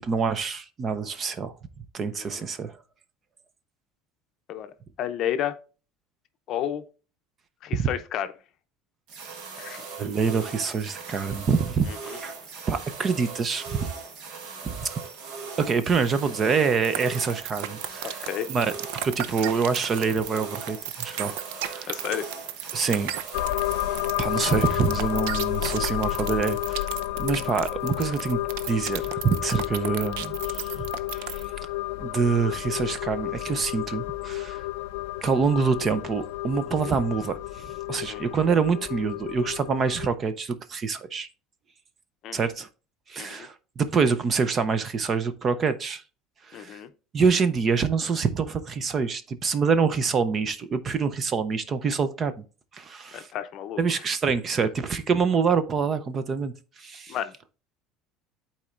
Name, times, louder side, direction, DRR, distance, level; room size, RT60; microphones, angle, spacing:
voice 1, 0.0-1.5 1.9-2.8 7.7-7.9 10.0-12.3 12.7-13.9 14.6-15.0 15.6-18.7 19.0-21.9 22.7-23.1 24.2-26.9 27.2-28.4 28.7-30.8 31.1-31.4 32.0-34.6 35.2-41.3 42.3-42.7 43.1-46.0 46.5-46.8 47.1-52.3 52.7-53.3 53.8-57.2, right 5 dB, 25° right, 0.5 m, -26 dB
voice 2, 5.0-5.6 6.5-6.8 7.6-8.3 9.6-9.8 11.9-12.0 18.0-18.5 21.9-22.3 38.1-38.2 42.2-42.4 43.2-43.5 46.5-46.9 53.1-53.8 57.1-57.3, left 10 dB, 40° left, 0.6 m, -31 dB
sound 1, 9.1-27.1, right 5 dB, 55° right, 1.5 m, -40 dB
sound 2, 16.8-31.5, right 12 dB, 80° right, 0.6 m, -34 dB
sound 3, 23.3-40.1, left 16 dB, 80° left, 0.3 m, -31 dB
11.5 x 4.3 x 2.5 m
cardioid pair, 165°, 0 cm